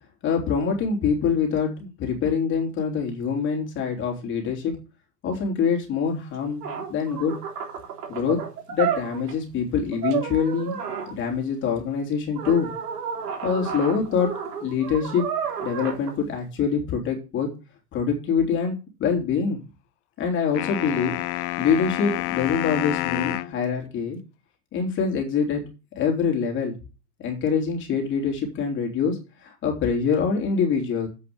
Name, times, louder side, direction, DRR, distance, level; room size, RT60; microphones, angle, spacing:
voice 1, 0.2-4.7 5.2-7.3 8.1-8.4 8.7-10.8 11.1-12.7 13.4-14.3 14.6-15.2 15.6-17.5 17.9-19.6 20.2-21.2 21.6-24.2 24.7-25.6 25.9-26.7 27.2-31.1, left 6 dB, 25° left, 1 dB, 3.3 m, -25 dB
sound 1, 6.3-6.4 6.6-9.4 9.9-11.1 12.4-16.1, right 8 dB, 85° right, 3.7 m, -31 dB
sound 2, 20.5-23.6, left 18 dB, 50° left, 0.7 m, -28 dB
8.1 x 5.9 x 7.9 m, 0.30 s
supercardioid pair, 150°, 46 cm